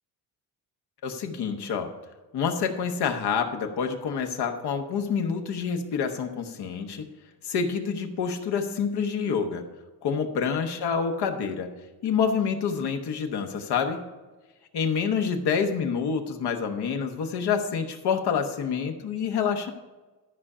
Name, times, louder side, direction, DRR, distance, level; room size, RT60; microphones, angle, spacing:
voice 1, 1.0-1.9 2.3-7.1 7.4-9.7 10.0-11.7 12.0-14.0 14.7-19.7, left 6 dB, 80° left, 5 dB, 1.1 m, -27 dB
12.5 x 5.0 x 5.6 m, 1.2 s
wide cardioid pair, 160°, 39 cm